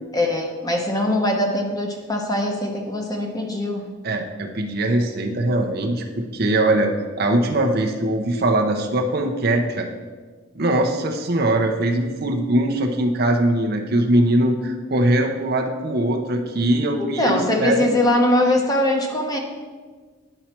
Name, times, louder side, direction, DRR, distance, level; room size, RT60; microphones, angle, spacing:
voice 1, 0.1-3.8 17.0-19.4, left 1 dB, 20° left, 2 dB, 0.9 m, -21 dB
voice 2, 4.0-6.9 7.2-9.9 10.5-17.9, right 1 dB, 50° right, 3 dB, 0.7 m, -21 dB
9.8 x 5.6 x 4.4 m, 1.4 s
head